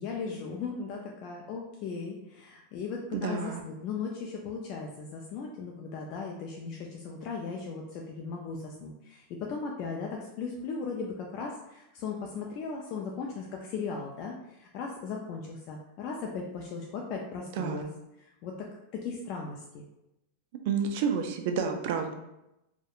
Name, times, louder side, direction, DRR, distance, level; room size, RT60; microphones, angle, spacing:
voice 1, 0.0-17.9 18.2-19.8, left 5 dB, 45° left, 0 dB, 0.3 m, -37 dB
voice 2, 3.1-3.6 17.6-17.8 20.7-22.1, right 6 dB, 60° right, 5 dB, 0.3 m, -29 dB
2.7 x 2.1 x 2.4 m, 0.90 s
supercardioid pair, 135°, 0 cm